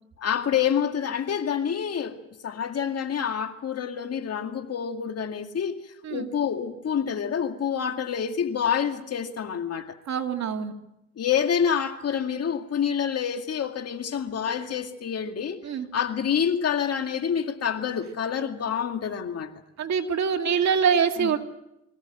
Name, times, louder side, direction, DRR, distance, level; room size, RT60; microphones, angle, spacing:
voice 1, 0.2-2.2 2.4-5.8 6.1-10.0 11.2-15.6 15.9-19.5 21.2-21.3, left 8 dB, 55° left, 2.2 m, -27 dB
voice 2, 10.1-10.7 15.6-15.9 19.8-21.4, right 7 dB, 65° right, 2.4 m, -24 dB
24.0 x 17.0 x 9.1 m
cardioid pair, 90°, 30 cm